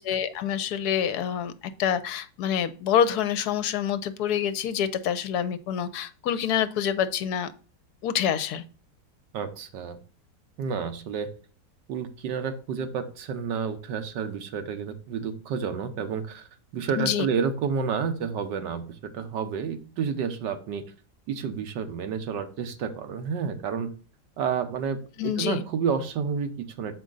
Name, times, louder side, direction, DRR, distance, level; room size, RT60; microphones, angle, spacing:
voice 1, 0.0-1.5 1.8-7.5 8.0-8.6 16.9-17.3 25.2-25.6, left 9 dB, 70° left, 13 dB, 1.1 m, -26 dB
voice 2, 9.3-10.0 10.6-11.3 11.9-20.8 21.3-23.9 24.4-26.9, right 6 dB, 85° right, 8 dB, 1.5 m, -30 dB
7.4 x 5.0 x 3.9 m, 0.38 s
omnidirectional pair, 1.8 m